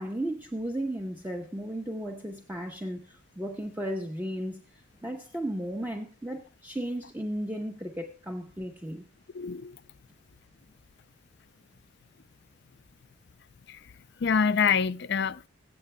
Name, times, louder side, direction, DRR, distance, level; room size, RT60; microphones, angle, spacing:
voice 1, 0.0-9.0, right 1 dB, 10° right, 0.9 m, -35 dB
voice 2, 9.3-9.8 13.7-13.8 14.2-15.5, left 6 dB, 55° left, 0.4 m, -26 dB
22.0 x 8.5 x 2.2 m
head